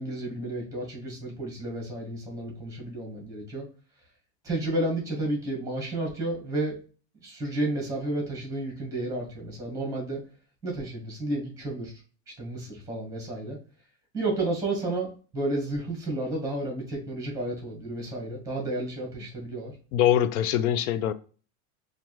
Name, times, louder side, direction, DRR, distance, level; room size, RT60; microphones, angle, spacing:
voice 1, 0.0-3.6 4.4-6.8 7.2-10.2 10.6-11.9 12.4-13.6 14.1-15.1 15.3-19.7, right 2 dB, 10° right, 1.2 m, -31 dB
voice 2, 19.9-21.1, left 11 dB, 80° left, 0.5 m, -23 dB
4.5 x 2.5 x 3.0 m
supercardioid pair, 165°, 42 cm